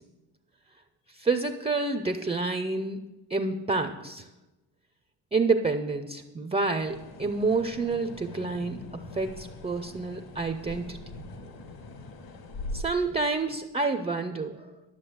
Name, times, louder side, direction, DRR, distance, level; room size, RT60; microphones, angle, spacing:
voice 1, 1.1-3.0 3.3-4.3 5.3-11.0 12.7-14.7, right 3 dB, 15° right, 8 dB, 0.4 m, -28 dB
sound 1, 6.8-12.8, left 2 dB, 50° left, 1.5 m, -42 dB
12.0 x 7.3 x 7.8 m, 1.0 s
cardioid pair, 135°, 46 cm